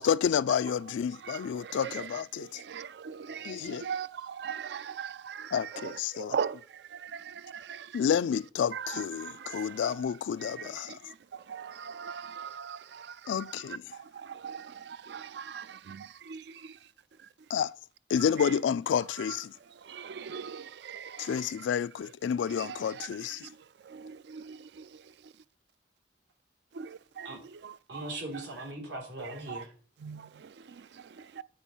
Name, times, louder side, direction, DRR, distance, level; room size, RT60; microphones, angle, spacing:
voice 1, 0.0-2.6 3.4-3.8 5.5-6.3 7.9-11.0 13.3-13.8 17.5-17.7 18.1-19.5 21.2-23.5, left 8 dB, 85° left, 0.3 m, -30 dB
voice 2, 1.1-8.1 8.7-10.1 10.4-16.9 17.2-17.3 18.2-18.6 19.2-21.7 22.0-22.1 22.5-25.3 26.7-28.0 28.3-28.4 29.2-29.6 30.0-31.4, right 7 dB, 65° right, 0.4 m, -41 dB
voice 3, 27.9-29.7, right 1 dB, 80° right, 3.2 m, -39 dB
8.8 x 4.5 x 5.4 m
head